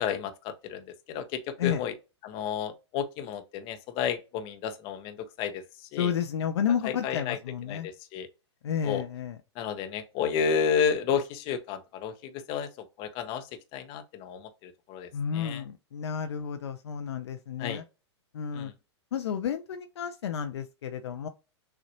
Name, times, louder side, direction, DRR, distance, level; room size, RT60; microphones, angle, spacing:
voice 1, 0.0-1.9 2.2-5.6 5.9-6.1 6.8-7.4 7.7-8.3 8.8-9.0 9.6-12.7 13.0-13.5 13.7-15.6 17.6-17.8 18.5-18.7, left 7 dB, 40° left, 0.8 m, -31 dB
voice 2, 6.0-7.9 8.6-9.4 15.1-17.8 18.3-18.7 19.1-21.3, left 8 dB, 65° left, 0.6 m, -31 dB
6.6 x 2.5 x 2.9 m
figure-of-eight pair, 105°, 15 cm